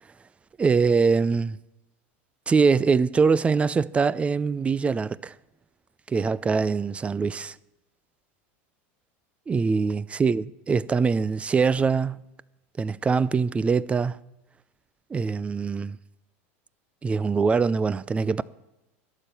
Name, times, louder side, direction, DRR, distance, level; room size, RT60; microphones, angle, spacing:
voice 1, 0.6-1.6 2.5-5.3 6.1-7.5 9.5-12.2 12.8-14.2 15.1-16.0 17.0-18.4, right 5 dB, 15° right, 0.4 m, -23 dB
12.5 x 7.0 x 9.1 m
supercardioid pair, 120°, 7 cm